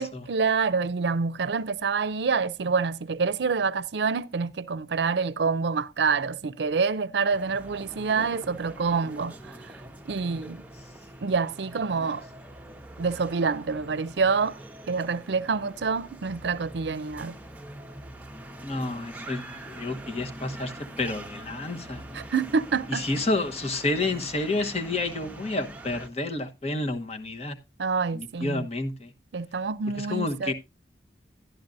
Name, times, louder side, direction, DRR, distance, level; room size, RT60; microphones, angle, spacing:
voice 1, 0.0-9.3 10.1-10.6 11.2-12.2 13.0-14.6 14.9-17.4 22.1-23.0 27.8-28.7 29.3-30.5, right 5 dB, 75° right, 0.5 m, -27 dB
sound 1, 7.3-26.1, right 1 dB, 10° right, 0.9 m, -43 dB
voice 2, 18.6-22.0 22.9-27.6 28.1-29.1 30.0-30.5, left 2 dB, 35° left, 1.2 m, -30 dB
12.0 x 11.0 x 2.6 m
head